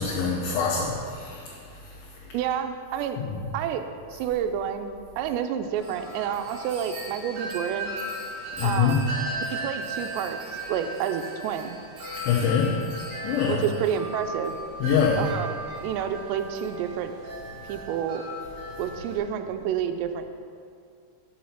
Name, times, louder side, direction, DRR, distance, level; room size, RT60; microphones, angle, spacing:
voice 1, 0.0-1.4 3.2-3.3 8.6-9.0 12.3-12.7 13.2-13.6 14.8-15.2, left 7 dB, 75° left, -4 dB, 2.3 m, -24 dB
voice 2, 2.3-3.2 3.5-3.8 4.1-7.9 8.6-9.0 9.4-10.4 10.7-11.8 13.5-14.5 15.2-15.5 15.8-17.1 17.7-18.2 18.8-20.3, right 9 dB, 85° right, 7 dB, 2.7 m, -29 dB
Wind chime, 5.8-19.2, right 1 dB, 60° right, 3.0 m, -37 dB
6.3 x 5.8 x 7.1 m, 2.3 s
omnidirectional pair, 5.0 m